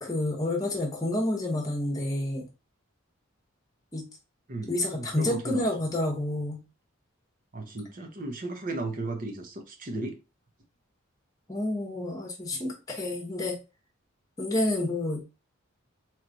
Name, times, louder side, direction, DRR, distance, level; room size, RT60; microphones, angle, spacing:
voice 1, 0.0-2.5 3.9-4.1 4.7-6.6 11.5-13.6 14.4-15.2, left 1 dB, 15° left, 1.1 m, -29 dB
voice 2, 4.5-5.6 7.5-10.2, right 2 dB, 40° right, 0.8 m, -35 dB
3.2 x 3.0 x 3.9 m
head